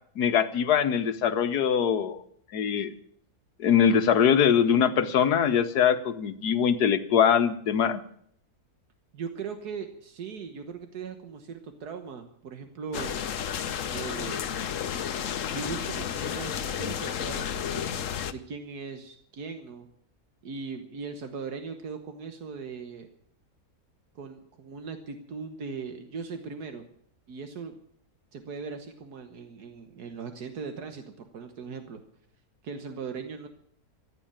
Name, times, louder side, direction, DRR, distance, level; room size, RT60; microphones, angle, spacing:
voice 1, 0.2-2.2 2.5-2.9 3.6-8.0, left 8 dB, 85° left, 12 dB, 1.6 m, -22 dB
voice 2, 9.1-13.2 13.9-14.4 15.5-19.9 20.4-23.1 24.2-26.8 27.3-27.8 28.3-32.0 32.6-33.5, right 5 dB, 80° right, 7 dB, 1.8 m, -39 dB
sound 1, 12.9-18.3, left 8 dB, 60° left, 1.1 m, -32 dB
15.0 x 9.8 x 8.9 m, 0.65 s
omnidirectional pair, 1.6 m